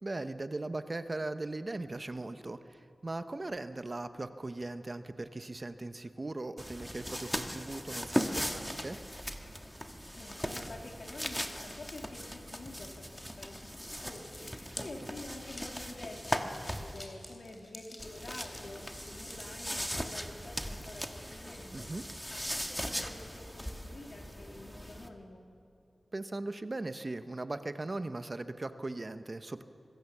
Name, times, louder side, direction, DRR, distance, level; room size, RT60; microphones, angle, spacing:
voice 1, 0.0-9.0 14.7-14.9 21.7-22.0 26.1-29.6, right 2 dB, 35° right, 10 dB, 0.9 m, -39 dB
sound 1, 6.6-17.0 18.0-25.1, equal, 5° left, 1.5 m, -39 dB
voice 2, 10.1-21.9 22.3-25.4, left 2 dB, 65° left, 1 dB, 3.3 m, -48 dB
sound 2, 13.1-19.5, left 1 dB, 20° left, 3.4 m, -53 dB
24.5 x 16.0 x 7.2 m, 2.5 s
wide cardioid pair, 70°, 0 cm